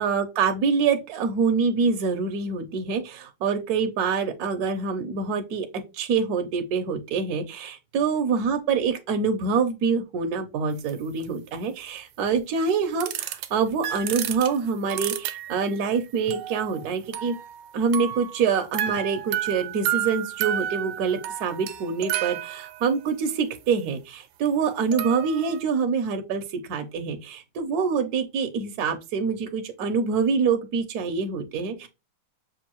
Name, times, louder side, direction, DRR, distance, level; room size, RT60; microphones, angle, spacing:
voice 1, 0.0-5.7 5.9-17.4 17.7-31.9, right 5 dB, 65° right, 6 dB, 0.9 m, -25 dB
sound 1, 10.9-11.0 11.2-11.3 13.0-13.5 13.8-15.8 16.3-17.7 17.9-23.1 24.5-24.6 24.9-25.6, right 11 dB, 80° right, 1.4 m, -31 dB
6.2 x 2.6 x 2.9 m, 0.26 s
omnidirectional pair, 2.3 m